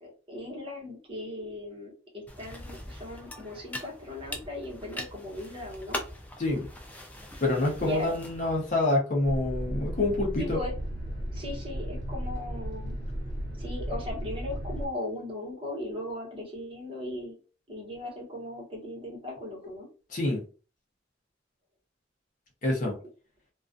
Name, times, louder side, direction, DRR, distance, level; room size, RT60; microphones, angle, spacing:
voice 1, 0.0-6.0 7.8-8.1 10.4-10.7 11.3-12.9 13.6-17.4 17.7-19.9, left 1 dB, 30° right, -3 dB, 0.9 m, -38 dB
sound 1, 2.3-8.8, left 1 dB, 10° left, 0.3 m, -41 dB
voice 2, 7.4-10.6 20.1-20.4 22.6-22.9, left 2 dB, 45° left, -1 dB, 0.6 m, -27 dB
sound 2, 9.2-14.9, equal, 65° left, 1.0 m, -35 dB
2.3 x 2.2 x 2.5 m, 0.37 s
head